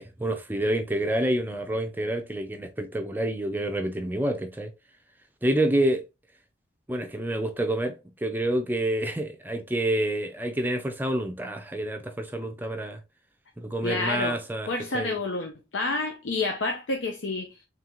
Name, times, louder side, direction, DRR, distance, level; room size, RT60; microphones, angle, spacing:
voice 1, 0.0-4.7 5.4-6.0 6.9-13.0 13.6-15.2, right 1 dB, 10° right, 0.4 m, -28 dB
voice 2, 13.8-14.4 14.7-17.5, left 3 dB, 85° left, 0.7 m, -29 dB
3.8 x 3.3 x 2.9 m
head